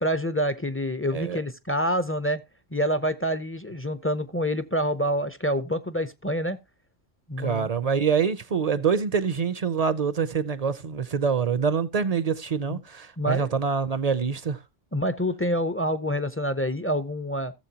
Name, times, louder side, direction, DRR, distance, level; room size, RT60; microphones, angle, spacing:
voice 1, 0.0-2.4 2.7-6.6 7.3-7.7 12.7-12.8 13.2-13.5 14.9-17.5, equal, 20° left, 0.3 m, -27 dB
voice 2, 7.4-14.6, right 6 dB, 45° right, 0.5 m, -25 dB
16.5 x 7.3 x 2.8 m
omnidirectional pair, 1.3 m